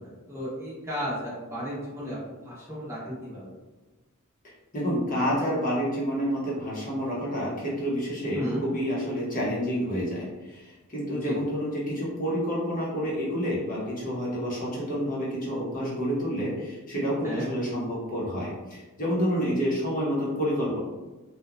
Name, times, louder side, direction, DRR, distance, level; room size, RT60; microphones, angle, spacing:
voice 1, 0.0-2.2 2.4-3.5 8.3-8.6 11.1-11.4 17.2-17.4, equal, 10° right, -8 dB, 0.8 m, -34 dB
voice 2, 4.7-20.8, equal, 40° left, -6 dB, 0.8 m, -29 dB
2.9 x 2.1 x 2.4 m, 1.2 s
head